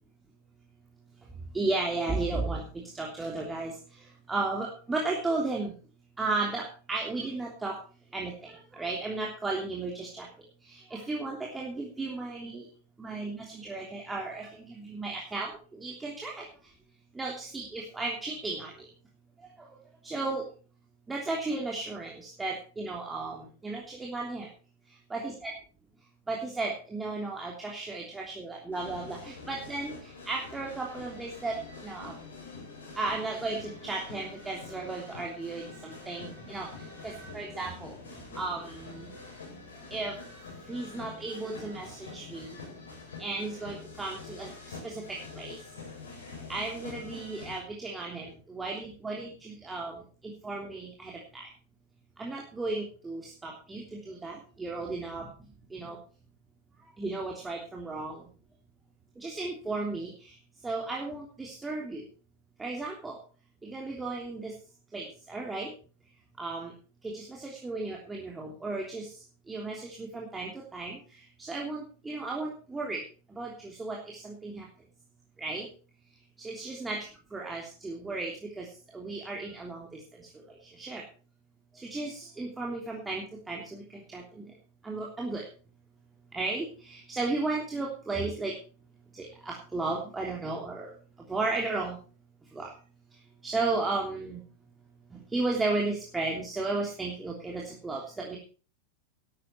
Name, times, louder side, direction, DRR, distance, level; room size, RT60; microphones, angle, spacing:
voice 1, 1.5-3.7 4.3-5.7 6.2-7.8 8.1-10.3 10.7-12.7 13.0-16.4 17.1-18.7 19.6-19.7 20.0-20.4 21.1-24.5 25.1-25.3 26.3-31.6 31.8-32.1 33.0-36.7 37.0-38.0 38.3-39.1 39.9-40.1 40.7-42.6 43.2-45.0 45.3-45.6 46.5-49.9 50.2-51.5 52.2-55.3 55.7-56.0 57.0-58.2 59.2-60.3 60.6-62.0 62.6-63.2 63.6-64.5 64.9-65.7 66.4-66.7 67.0-69.1 69.5-71.0 71.4-73.0 73.4-74.6 75.4-75.7 76.4-77.0 77.3-78.7 78.9-80.0 80.8-81.0 81.7-84.4 84.8-85.4 86.3-88.5 89.1-90.9 91.3-92.0 92.5-92.7 93.4-94.4 95.3-98.4, right 3 dB, 10° right, -1 dB, 3.2 m, -34 dB
sound 1, 28.7-47.6, left 3 dB, 65° left, 7.3 m, -45 dB
13.5 x 12.5 x 4.6 m, 0.38 s
figure-of-eight pair, 90°, 0 cm